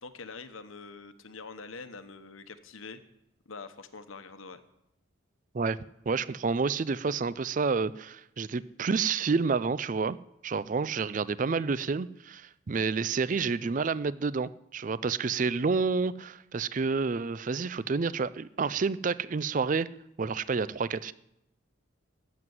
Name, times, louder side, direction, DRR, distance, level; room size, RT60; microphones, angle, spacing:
voice 1, 0.0-3.0 3.4-4.6, left 4 dB, 85° left, 10 dB, 1.1 m, -44 dB
voice 2, 6.1-10.2 10.4-19.9 20.2-21.1, right 4 dB, 40° right, 18 dB, 0.4 m, -29 dB
13.5 x 7.8 x 9.5 m, 0.84 s
head